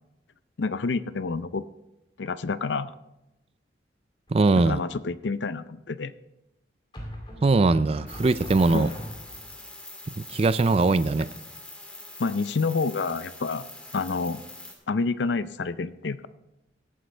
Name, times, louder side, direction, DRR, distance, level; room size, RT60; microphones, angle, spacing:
voice 1, 0.6-1.6 2.2-2.9 4.6-6.1 8.7-8.9 12.2-13.6 13.9-14.4 14.9-16.3, left 4 dB, 75° left, 14 dB, 0.5 m, -28 dB
sound 1, 4.3-4.8 6.9-9.6, equal, 25° left, 2.4 m, -40 dB
voice 2, 4.3-4.8 7.4-8.9 10.3-11.3, right 3 dB, 35° right, 15 dB, 0.4 m, -21 dB
sound 2, 8.1-14.7, left 2 dB, 5° left, 1.9 m, -43 dB
17.0 x 9.2 x 3.4 m, 0.94 s
head